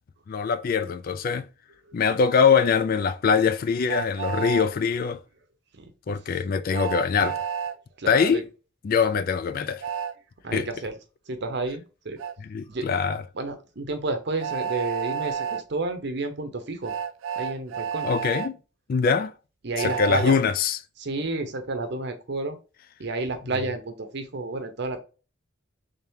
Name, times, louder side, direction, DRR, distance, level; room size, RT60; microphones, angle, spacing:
voice 1, 0.3-1.4 1.9-5.2 6.1-7.4 8.1-8.5 8.8-9.8 10.5-10.7 12.4-13.2 18.0-18.5 18.9-19.3 19.8-20.8, left 6 dB, 45° left, 0.3 m, -23 dB
Train, 3.9-4.7 6.7-7.8 9.8-10.1 12.2-12.3 14.4-15.6 16.8-18.5 19.8-20.3, right 7 dB, 80° right, 0.4 m, -30 dB
voice 2, 5.7-6.4 8.0-8.4 10.4-10.9 11.3-12.2 12.7-12.9 13.3-16.9 17.4-18.1 19.6-20.4 21.0-22.6 23.0-25.0, right 2 dB, 60° right, 0.7 m, -31 dB
3.5 x 3.5 x 2.7 m
head